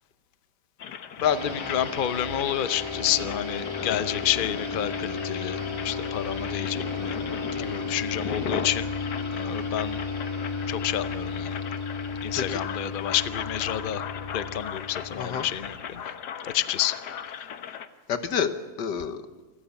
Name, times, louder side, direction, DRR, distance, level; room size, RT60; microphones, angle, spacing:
sound 1, 0.8-17.9, left 8 dB, 70° left, 1.7 m, -38 dB
voice 1, 1.2-7.2 7.6-8.9 9.3-10.0 10.7-11.6 12.2-14.0 14.3-16.0 16.5-16.9 17.4-17.5, left 11 dB, 45° left, 13 dB, 0.7 m, -29 dB
sound 2, 1.2-16.0, left 4 dB, 15° left, 1.5 m, -33 dB
voice 2, 7.6-8.0 12.3-12.6 15.1-15.5 18.1-19.2, left 7 dB, 90° left, 9 dB, 1.9 m, -30 dB
27.5 x 14.0 x 8.3 m, 1.3 s
omnidirectional pair, 1.8 m